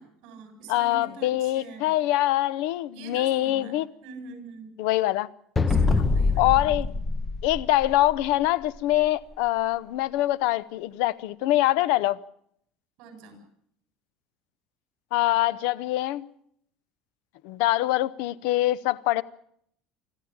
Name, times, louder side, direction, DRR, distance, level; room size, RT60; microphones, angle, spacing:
voice 1, 0.0-1.9 2.9-4.7 5.7-7.0 13.0-13.4, right 3 dB, 55° right, 7.6 m, -44 dB
voice 2, 0.7-3.9 4.8-5.3 6.4-6.9 7.4-12.2 15.1-16.2 17.4-19.2, left 16 dB, 70° left, 0.8 m, -24 dB
sound 1, 5.6-8.3, left 4 dB, 15° left, 1.0 m, -24 dB
25.5 x 14.5 x 8.8 m
cardioid pair, 165°, 0 cm